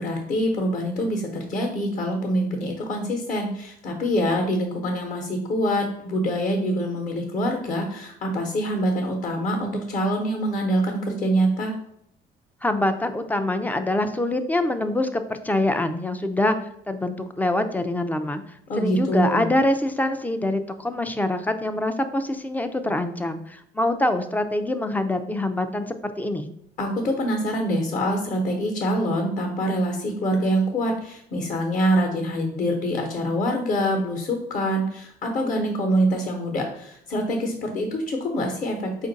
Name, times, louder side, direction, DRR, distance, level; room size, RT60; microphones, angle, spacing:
voice 1, 0.0-11.7 18.7-19.5 26.8-39.1, equal, 50° left, 2 dB, 0.9 m, -25 dB
voice 2, 12.6-16.6 16.9-18.4 18.8-26.5, left 1 dB, 10° left, 8 dB, 0.3 m, -25 dB
4.3 x 2.5 x 4.0 m, 0.71 s
cardioid pair, 110°, 17 cm